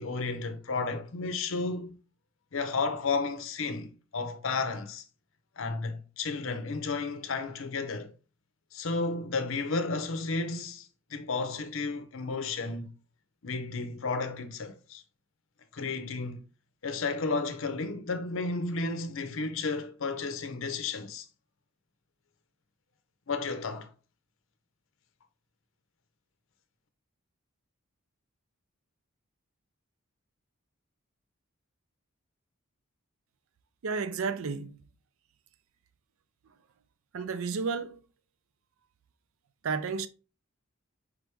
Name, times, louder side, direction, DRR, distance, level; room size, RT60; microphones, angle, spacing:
voice 1, 0.0-2.0 2.5-5.0 5.6-8.1 8.7-12.9 13.4-15.0 15.7-16.4 16.8-21.3 23.3-23.9, left 3 dB, 65° left, 0.6 m, -32 dB
voice 2, 33.8-34.8 37.1-38.0 39.6-40.1, right 5 dB, 75° right, 0.4 m, -32 dB
5.0 x 3.4 x 3.0 m
head